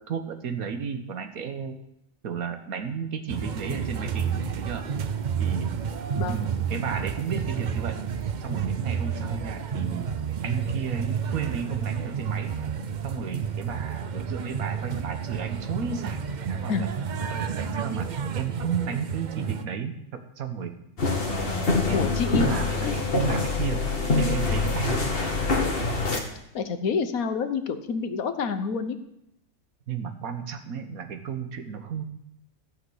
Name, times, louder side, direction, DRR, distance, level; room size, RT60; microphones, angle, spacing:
voice 1, 0.0-1.8 2.2-4.9 5.4-5.7 6.3-8.0 8.4-10.1 10.4-12.5 13.0-16.2 16.5-16.9 17.3-18.1 18.3-20.7 21.3-23.8 24.2-25.0 29.9-32.0, right 6 dB, 85° right, 8 dB, 1.6 m, -33 dB
sound 1, 3.3-19.6, right 7 dB, 55° right, 0.5 m, -30 dB
sound 2, 21.0-26.2, left 3 dB, 45° left, 1.6 m, -25 dB
voice 2, 21.9-22.5 22.8-22.9 26.5-29.0, left 5 dB, 80° left, 9 dB, 1.4 m, -28 dB
14.0 x 5.8 x 7.8 m, 0.81 s
omnidirectional pair, 1.5 m